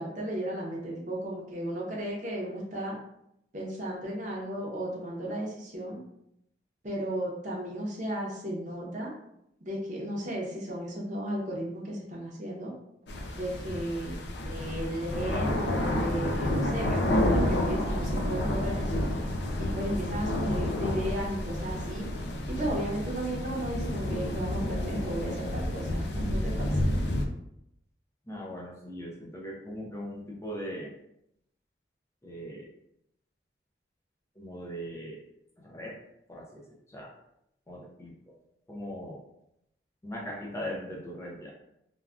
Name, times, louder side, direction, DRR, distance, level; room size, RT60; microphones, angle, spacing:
voice 1, 0.0-2.9 3.5-6.0 6.8-9.1 9.6-12.7 13.3-14.1 14.4-19.1 19.6-22.1 22.5-26.8, right 1 dB, 45° right, -2 dB, 0.7 m, -34 dB
sound 1, 13.1-27.3, left 1 dB, 80° left, 0.4 m, -30 dB
voice 2, 28.2-30.9 32.2-32.7 34.3-35.2 35.6-36.0 36.3-37.1 37.7-38.4 38.7-39.2 40.0-41.5, equal, 15° left, -3 dB, 0.4 m, -40 dB
3.3 x 2.3 x 2.4 m, 0.79 s
head